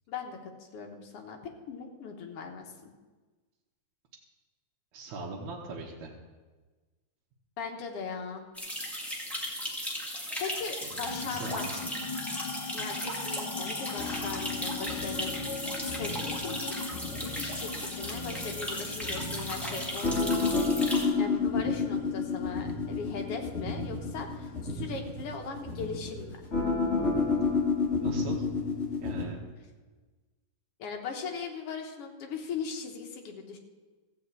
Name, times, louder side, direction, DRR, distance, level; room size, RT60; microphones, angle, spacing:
voice 1, 0.1-1.4 1.7-2.9 7.6-8.5 10.4-11.8 12.7-16.8 17.3-20.7 21.2-26.3 30.8-33.6, left 5 dB, 60° left, 3 dB, 1.9 m, -39 dB
voice 2, 4.9-6.1 10.8-11.8 28.0-28.5 29.0-29.4, right 2 dB, 75° right, -3 dB, 2.5 m, -40 dB
sound 1, 8.5-21.0, equal, ahead, 1.5 m, -36 dB
sound 2, 11.1-25.9, left 4 dB, 80° left, 0.9 m, -42 dB
sound 3, 14.0-29.2, left 4 dB, 30° left, 1.7 m, -31 dB
15.0 x 5.1 x 8.2 m, 1.3 s
omnidirectional pair, 3.3 m